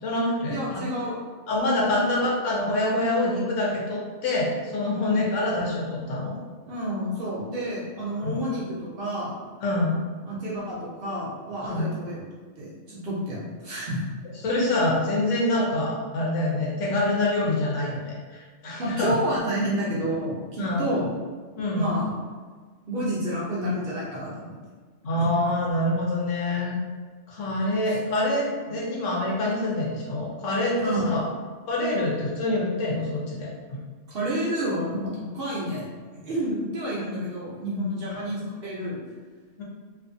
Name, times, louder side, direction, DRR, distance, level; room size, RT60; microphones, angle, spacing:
voice 1, 0.0-0.8 1.5-6.3 8.2-8.4 9.6-10.0 11.6-11.9 14.4-19.2 20.6-20.8 21.6-21.9 25.0-26.8 27.3-31.2 31.7-33.8 38.1-38.2 39.6-39.7, left 1 dB, 70° left, -4 dB, 1.0 m, -26 dB
voice 2, 0.5-1.1 1.9-2.2 4.9-5.2 6.6-9.3 10.3-12.2 12.6-14.0 18.8-21.1 21.7-22.1 22.9-24.6 25.2-25.3 30.8-31.1 34.1-35.8 36.2-39.0, equal, 55° right, -7 dB, 0.7 m, -29 dB
2.5 x 2.5 x 2.5 m, 1.5 s
omnidirectional pair, 1.3 m